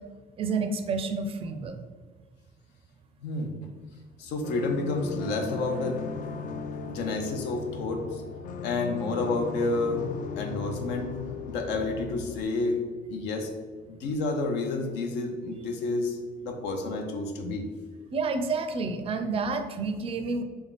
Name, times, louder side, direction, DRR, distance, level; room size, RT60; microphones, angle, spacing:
voice 1, 0.4-1.8 18.1-20.4, right 4 dB, 35° right, 7 dB, 0.4 m, -29 dB
voice 2, 3.2-3.5 4.2-6.0 6.9-8.2 8.6-10.0 10.4-11.1 11.5-12.8 13.1-13.5 13.9-17.6, left 3 dB, 85° left, 3 dB, 0.7 m, -30 dB
sound 1, 4.4-12.4, left 5 dB, 50° left, 0.4 m, -37 dB
3.5 x 3.5 x 4.0 m, 1.5 s
cardioid pair, 110°, 17 cm